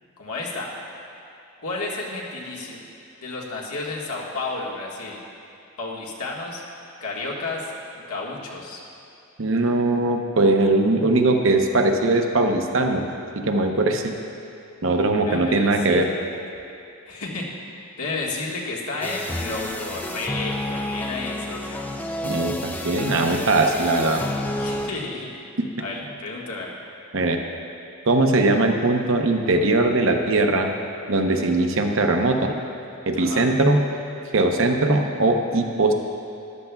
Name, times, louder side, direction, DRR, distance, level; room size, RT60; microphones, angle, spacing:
voice 1, 0.2-0.7 1.6-2.8 3.2-5.2 5.8-6.6 7.0-8.8 15.2-16.2 17.1-17.5 18.0-21.8 24.6-25.4 25.8-26.7 33.1-33.4, left 3 dB, 90° left, -3 dB, 1.6 m, -32 dB
voice 2, 9.4-13.0 13.5-14.0 14.8-16.1 22.2-24.2 27.1-27.4 28.1-30.7 31.1-32.6 33.1-33.9 34.3-35.9, right 2 dB, 60° right, 4 dB, 0.8 m, -20 dB
sound 1, 19.0-24.9, left 1 dB, 10° left, 0.3 m, -30 dB
13.5 x 11.5 x 2.3 m, 2.7 s
head